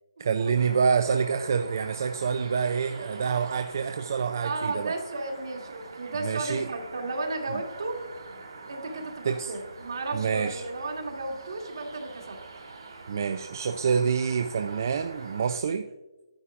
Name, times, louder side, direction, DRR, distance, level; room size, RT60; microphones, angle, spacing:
voice 1, 0.2-5.0 6.2-6.7 7.5-7.6 9.2-9.5 10.1-10.6 13.1-15.9, right 6 dB, 45° right, 8 dB, 0.3 m, -27 dB
sound 1, 0.5-15.6, right 3 dB, 85° right, 2.5 m, -44 dB
voice 2, 4.4-8.0 8.7-12.4, right 2 dB, 65° right, 2 dB, 1.7 m, -34 dB
9.8 x 9.6 x 2.4 m, 1.1 s
hypercardioid pair, 165°, 2 cm